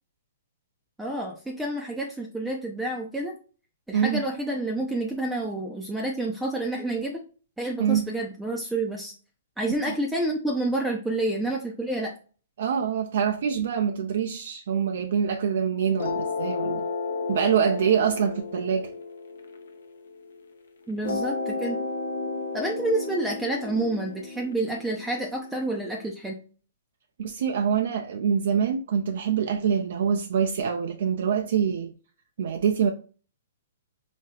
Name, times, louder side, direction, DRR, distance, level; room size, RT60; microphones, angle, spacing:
voice 1, 1.0-3.4 3.9-7.2 7.6-9.1 9.6-12.1 20.9-21.8 22.5-26.4, right 1 dB, 5° right, 0.5 m, -29 dB
voice 2, 12.6-16.9 17.3-18.9 27.2-31.9 32.4-32.9, right 7 dB, 65° right, 0.4 m, -25 dB
sound 1, 16.0-20.4 21.0-26.0, left 3 dB, 80° left, 0.7 m, -33 dB
4.1 x 2.8 x 2.3 m
hypercardioid pair, 140°, 0 cm